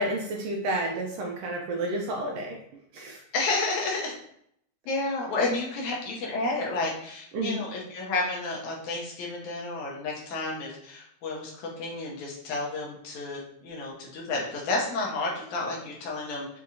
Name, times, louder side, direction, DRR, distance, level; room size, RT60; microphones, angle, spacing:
voice 1, 0.0-2.6 2.9-3.2 7.3-7.6, right 1 dB, 80° right, 0 dB, 1.5 m, -30 dB
voice 2, 3.3-4.2 4.9-16.5, left 2 dB, 85° left, -2 dB, 2.4 m, -31 dB
5.8 x 2.8 x 2.5 m, 0.70 s
omnidirectional pair, 3.3 m